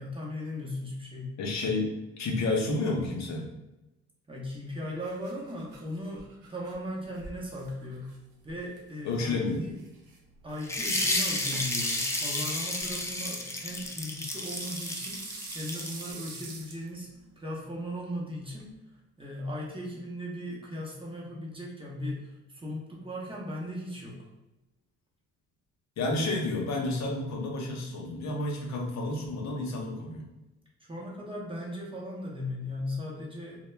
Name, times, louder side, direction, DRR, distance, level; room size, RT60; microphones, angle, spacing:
voice 1, 0.0-1.4 4.3-8.1 8.4-9.8 10.4-17.1 17.4-18.7 19.2-24.2 30.9-33.7, left 1 dB, 15° right, -4 dB, 0.7 m, -38 dB
voice 2, 1.4-3.5 9.0-9.6 26.0-30.2, left 2 dB, 65° left, 0 dB, 0.6 m, -30 dB
sound 1, 4.5-18.7, right 3 dB, 85° right, 0.6 m, -48 dB
sound 2, 10.6-16.1, left 1 dB, 10° left, 0.3 m, -31 dB
2.2 x 2.1 x 3.1 m, 0.98 s
cardioid pair, 90°, 30 cm